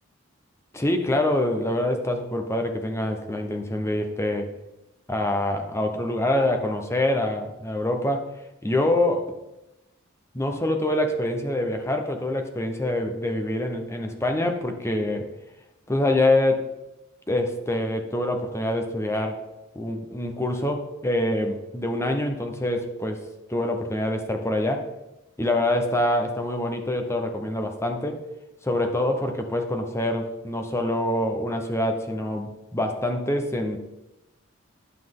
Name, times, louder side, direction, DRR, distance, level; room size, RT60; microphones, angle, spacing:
voice 1, 0.7-4.5 5.1-8.3 8.6-9.3 10.3-15.3 15.9-16.7 17.3-19.4 19.7-23.2 23.5-24.9 25.4-28.2 28.6-33.8, left 1 dB, 15° left, 4 dB, 0.9 m, -25 dB
11.0 x 5.8 x 3.8 m, 0.95 s
head